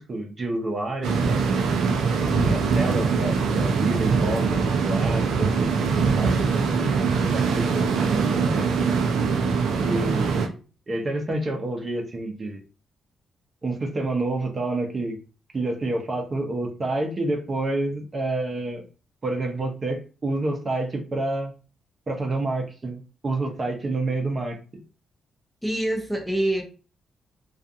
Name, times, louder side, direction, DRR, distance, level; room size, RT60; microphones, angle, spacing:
voice 1, 0.0-1.4 2.2-8.7 9.8-10.6 10.9-12.6 13.6-15.2 15.5-18.8 19.2-21.5 22.1-24.6, right 2 dB, 35° right, 3 dB, 0.7 m, -29 dB
sound 1, 1.0-10.5, right 5 dB, 90° right, 0.5 m, -23 dB
voice 2, 25.6-26.6, right 1 dB, 5° left, 2 dB, 0.6 m, -25 dB
2.4 x 2.4 x 2.6 m, 0.34 s
cardioid pair, 100°, 0 cm